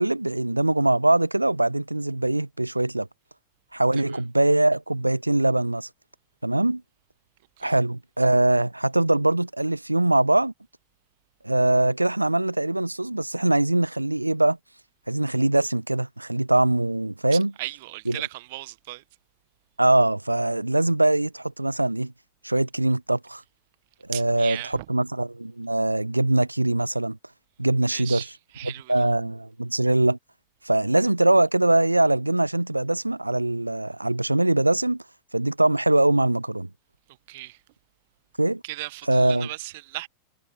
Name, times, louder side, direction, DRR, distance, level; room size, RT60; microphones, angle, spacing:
voice 1, 0.0-3.1 3.7-5.9 6.4-6.8 7.6-10.5 11.4-14.6 15.1-17.5 18.1-18.2 19.8-22.1 22.4-23.4 24.1-27.2 27.6-28.3 28.6-30.2 30.6-35.0 35.3-36.7 38.4-38.6 39.1-39.5, right 2 dB, 85° right, 0.6 m, -22 dB
voice 2, 17.3-19.0 24.1-24.8 27.9-28.9 37.3-37.6 38.6-40.1, right 19 dB, 50° right, 1.3 m, -36 dB
figure-of-eight pair, 90°, 0 cm